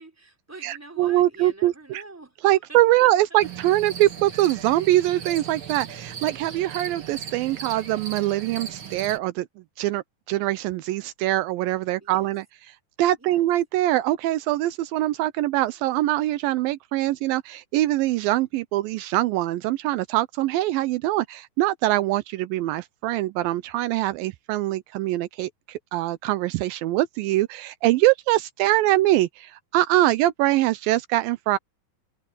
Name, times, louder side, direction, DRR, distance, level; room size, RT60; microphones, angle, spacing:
voice 1, 0.0-3.5 12.0-12.3 13.2-13.5, right 2 dB, 5° right, 3.3 m, -45 dB
voice 2, 0.6-1.7 2.4-9.5 9.8-12.4 13.0-31.6, right 15 dB, 80° right, 2.4 m, -23 dB
sound 1, 3.4-9.2, right 7 dB, 40° right, 2.3 m, -37 dB
omnidirectional pair, 4.1 m